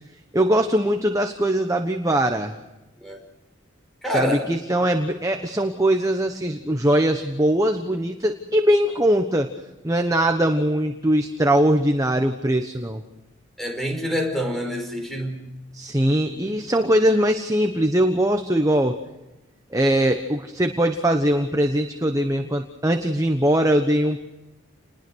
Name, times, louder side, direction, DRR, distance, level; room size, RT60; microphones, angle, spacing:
voice 1, 0.3-2.5 4.1-9.5 9.8-13.0 15.7-19.0 19.7-24.2, right 1 dB, 15° right, 5 dB, 1.1 m, -21 dB
voice 2, 4.0-4.5 13.6-15.4, equal, ahead, 2 dB, 5.2 m, -26 dB
29.5 x 20.5 x 6.3 m, 1.0 s
head